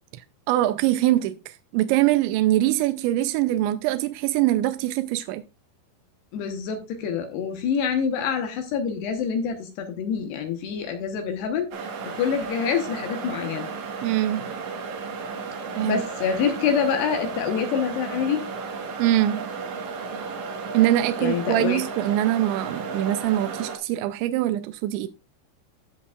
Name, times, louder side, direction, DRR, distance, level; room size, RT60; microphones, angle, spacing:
voice 1, 0.5-5.4 14.0-14.5 15.8-16.0 19.0-19.4 20.7-25.1, right 14 dB, 85° right, 2.7 m, -23 dB
voice 2, 6.3-11.7 12.0-13.7 15.8-18.4 21.2-21.8, left 7 dB, 70° left, 2.8 m, -26 dB
sound 1, 11.7-23.8, right 4 dB, 65° right, 1.9 m, -34 dB
15.0 x 7.0 x 2.4 m
omnidirectional pair, 5.7 m